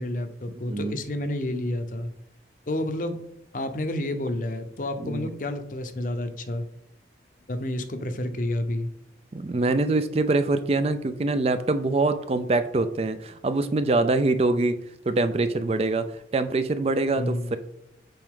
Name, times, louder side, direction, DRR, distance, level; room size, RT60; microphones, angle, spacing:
voice 1, 0.0-2.1 2.7-3.2 3.5-6.7 7.5-8.9 17.1-17.6, left 1 dB, 50° left, 9 dB, 0.6 m, -30 dB
voice 2, 9.3-14.8 15.1-17.6, right 2 dB, 35° right, 11 dB, 0.4 m, -24 dB
7.6 x 4.5 x 3.7 m, 0.78 s
head